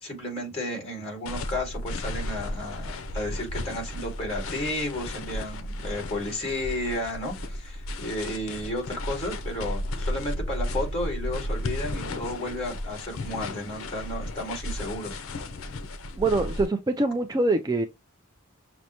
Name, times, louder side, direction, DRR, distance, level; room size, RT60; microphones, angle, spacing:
voice 1, 0.0-15.2, left 1 dB, 30° left, 2.1 m, -33 dB
sound 1, 1.3-16.7, left 1 dB, 70° left, 0.6 m, -34 dB
voice 2, 16.2-17.9, right 2 dB, 20° right, 0.3 m, -24 dB
6.2 x 2.1 x 2.8 m
head